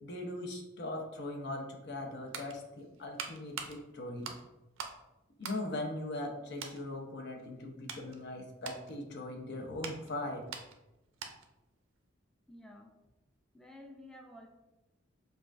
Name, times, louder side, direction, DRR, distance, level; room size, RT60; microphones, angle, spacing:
voice 1, 0.0-4.3 5.4-10.4, left 1 dB, 55° left, 2 dB, 0.6 m, -40 dB
sound 1, 1.9-5.0 5.3-6.3 6.6-6.8 7.4-11.6 11.9-12.1, right 6 dB, 75° right, 0.5 m, -45 dB
voice 2, 12.5-13.0 13.5-14.5, left 1 dB, 5° left, 1 dB, 0.4 m, -52 dB
5.4 x 2.4 x 2.4 m, 0.98 s
head